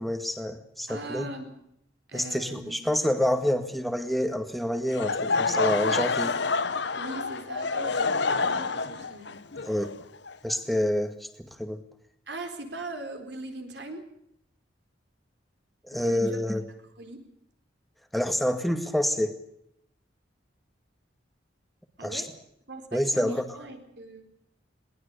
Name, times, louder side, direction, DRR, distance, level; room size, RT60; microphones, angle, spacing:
voice 1, 0.0-1.3 2.1-6.3 9.6-9.9 10.4-11.3 11.6-11.8 15.9-16.6 18.1-19.4 22.0-22.2 22.9-23.5, left 1 dB, ahead, 7 dB, 2.0 m, -27 dB
voice 2, 0.9-1.5 2.1-3.0 6.9-9.3 12.3-14.0 15.9-16.4 17.0-17.2 22.0-22.3 22.7-24.2, right 2 dB, 60° right, 6 dB, 4.3 m, -40 dB
Laughter / Crowd, 4.9-10.8, left 4 dB, 65° left, 1.1 m, -28 dB
22.0 x 19.5 x 6.9 m, 0.75 s
head